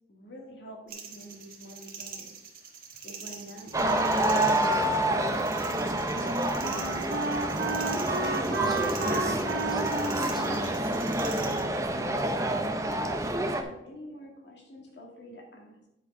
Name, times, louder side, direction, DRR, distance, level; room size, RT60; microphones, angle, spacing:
voice 1, 0.1-2.4 3.0-5.7 12.9-15.9, equal, 80° left, 1 dB, 2.0 m, -47 dB
sound 1, 0.9-11.6, right 6 dB, 50° right, 1.3 m, -44 dB
sound 2, 3.7-13.6, right 1 dB, 15° right, 0.6 m, -28 dB
Wind instrument woodwind instrument, 5.2-12.5, right 3 dB, 70° right, 1.0 m, -34 dB
voice 2, 7.7-11.8, equal, ahead, -3 dB, 1.9 m, -38 dB
9.6 x 4.7 x 5.3 m, 0.87 s
head